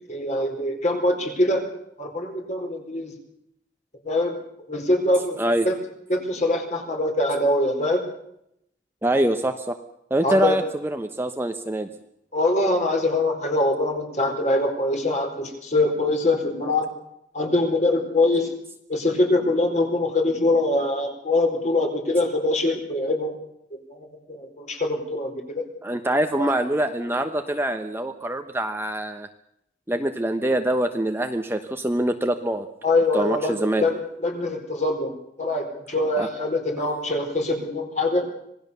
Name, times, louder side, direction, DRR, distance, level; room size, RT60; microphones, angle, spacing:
voice 1, 0.1-1.6 2.0-3.2 4.0-4.3 4.7-5.4 5.6-5.8 6.1-8.0 10.2-10.6 12.3-16.9 17.3-18.5 18.9-23.3 23.7-25.6 26.4-26.5 32.8-35.1 35.4-38.3, left 2 dB, 40° left, 3 dB, 4.3 m, -23 dB
voice 2, 9.0-9.8 10.1-11.9 25.8-29.3 29.9-32.7 33.1-33.9 36.2-36.3, right 1 dB, 10° right, 6 dB, 1.0 m, -24 dB
26.5 x 18.5 x 6.9 m, 0.77 s
head